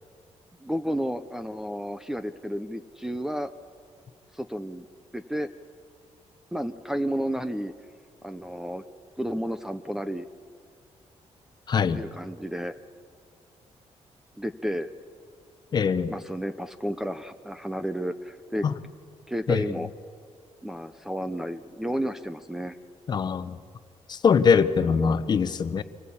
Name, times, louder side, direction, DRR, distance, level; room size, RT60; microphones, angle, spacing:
voice 1, 0.6-3.5 4.3-4.9 5.1-5.5 6.5-7.7 8.2-8.8 9.2-10.3 11.9-12.7 14.4-14.9 16.1-18.7 19.3-19.9 20.6-22.8 24.8-25.1, equal, 5° right, 7 dB, 0.5 m, -32 dB
voice 2, 11.7-12.0 15.7-16.1 18.6-18.7 19.5-19.6 23.1-23.6 24.1-25.8, left 6 dB, 40° left, 12 dB, 0.8 m, -22 dB
26.5 x 19.5 x 8.6 m, 2.2 s
wide cardioid pair, 180°, 12 cm